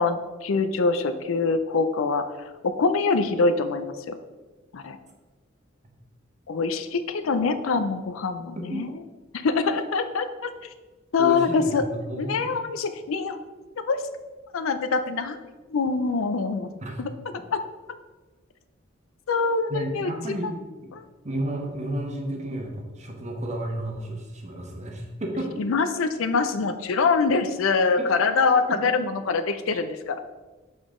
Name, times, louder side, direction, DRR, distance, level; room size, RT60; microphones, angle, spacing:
voice 1, 0.0-4.2 4.7-5.0 6.5-8.9 9.4-10.5 11.1-11.8 12.2-13.4 13.8-14.0 14.5-15.4 15.7-16.7 17.0-17.1 17.5-17.6 19.3-20.3 20.9-21.0 25.6-30.2, left 4 dB, 80° left, 10 dB, 0.5 m, -24 dB
voice 2, 11.2-12.6 16.8-17.0 19.7-20.5 20.8-20.9 21.2-25.7 28.0-28.1, right 1 dB, 35° right, 1 dB, 1.0 m, -32 dB
7.0 x 3.9 x 3.7 m, 1.2 s
head